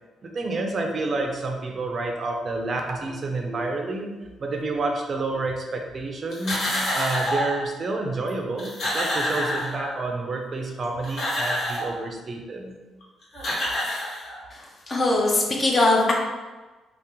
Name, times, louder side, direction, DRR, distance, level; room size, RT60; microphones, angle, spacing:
voice 1, 0.2-4.1 4.4-6.7 6.9-12.8, right 2 dB, 40° right, 2 dB, 0.5 m, -29 dB
sound 1, 6.3-7.6 8.3-8.4 8.6-10.1 10.8-12.0 13.0-13.1 13.3-14.6, equal, 60° left, 1.2 m, -27 dB
voice 2, 14.9-16.1, left 2 dB, 35° left, -1 dB, 0.7 m, -20 dB
2.8 x 2.0 x 3.6 m, 1.2 s
cardioid pair, 90°, 0 cm